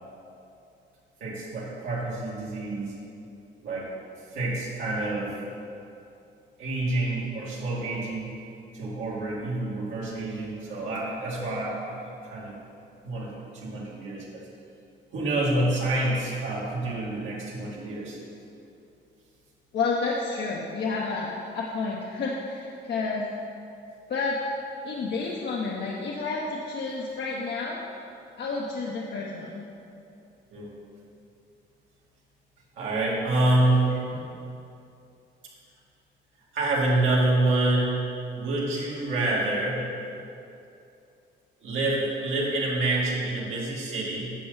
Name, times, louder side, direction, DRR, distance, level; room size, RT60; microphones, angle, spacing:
voice 1, 1.2-2.9 3.6-3.9 4.3-5.3 6.6-8.3 8.7-12.5 13.0-14.5 15.1-18.2 30.5-30.7 32.8-34.2 36.5-38.0 38.3-39.8 41.6-44.3, right 2 dB, 80° right, -5 dB, 2.2 m, -27 dB
voice 2, 19.7-23.3 24.1-24.4 24.8-27.8 28.4-29.6, left 4 dB, 60° left, -3 dB, 0.9 m, -30 dB
10.0 x 6.9 x 4.0 m, 2.7 s
cardioid pair, 90°, 20 cm